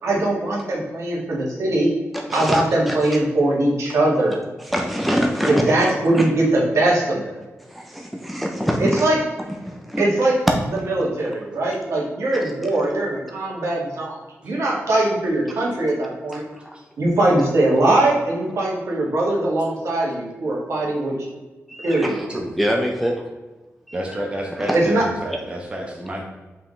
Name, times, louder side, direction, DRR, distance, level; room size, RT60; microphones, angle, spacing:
voice 1, 0.0-1.9 2.3-4.4 5.5-7.4 8.8-9.2 10.0-10.3 10.9-14.2 14.4-16.4 17.0-21.1 21.8-22.1 24.7-25.0, right 2 dB, 75° right, -4 dB, 2.0 m, -21 dB
voice 2, 2.1-3.2 4.6-6.3 7.6-9.1 9.4-10.0 10.7-10.9 12.3-12.5 16.3-16.8 21.7-22.3 22.6-23.3 23.9-24.9, equal, ahead, 1 dB, 0.6 m, -26 dB
voice 3, 23.9-26.2, equal, 20° right, 0 dB, 1.0 m, -30 dB
5.7 x 5.0 x 3.2 m, 1.2 s
wide cardioid pair, 165°, 5 cm